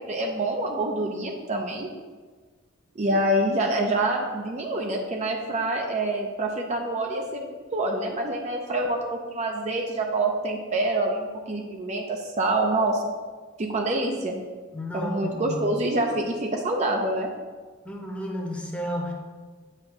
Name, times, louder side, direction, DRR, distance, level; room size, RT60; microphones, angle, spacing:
voice 1, 0.0-1.9 3.0-13.0 13.6-14.4 14.9-17.3, right 2 dB, 35° right, 2 dB, 0.5 m, -26 dB
voice 2, 14.7-15.8 17.8-19.1, equal, 5° left, -1 dB, 0.8 m, -32 dB
7.9 x 2.7 x 5.8 m, 1.4 s
head